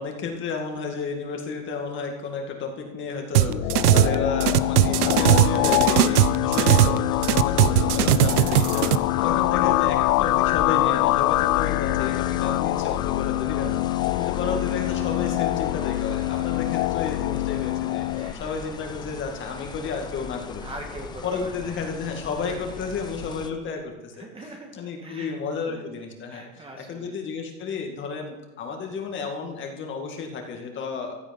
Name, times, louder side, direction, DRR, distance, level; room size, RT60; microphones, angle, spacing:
voice 1, 0.0-20.6 21.2-24.3 24.7-31.2, left 5 dB, 25° left, 3 dB, 2.2 m, -32 dB
sound 1, 3.3-4.1 4.4-7.0 7.2-9.0, right 14 dB, 85° right, 0.8 m, -19 dB
sound 2, 3.4-18.3, left 18 dB, 75° left, 0.5 m, -24 dB
voice 2, 3.7-4.2 9.1-9.5 14.0-14.6 18.1-18.6 20.6-21.8 22.5-22.8 24.2-24.7 25.0-25.3 25.7-27.2, right 2 dB, 15° right, 2 dB, 1.8 m, -43 dB
sound 3, 4.6-23.5, left 6 dB, 10° left, 0.5 m, -39 dB
15.5 x 12.0 x 5.4 m, 1.1 s
supercardioid pair, 145°, 43 cm